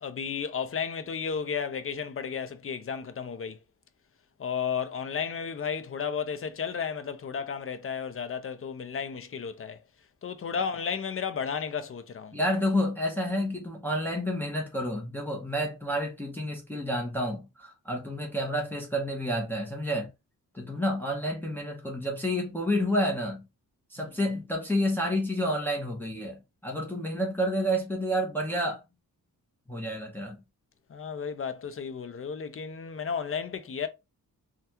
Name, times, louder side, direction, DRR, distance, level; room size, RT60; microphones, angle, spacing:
voice 1, 0.0-3.6 4.4-9.8 10.2-12.3 20.7-20.8 24.0-24.1 30.9-33.9, left 6 dB, 35° left, 0.5 m, -33 dB
voice 2, 12.3-20.1 20.5-23.5 23.9-28.8 29.7-30.4, equal, 5° left, 0.9 m, -29 dB
3.3 x 2.3 x 2.8 m
cardioid pair, 85°, 37 cm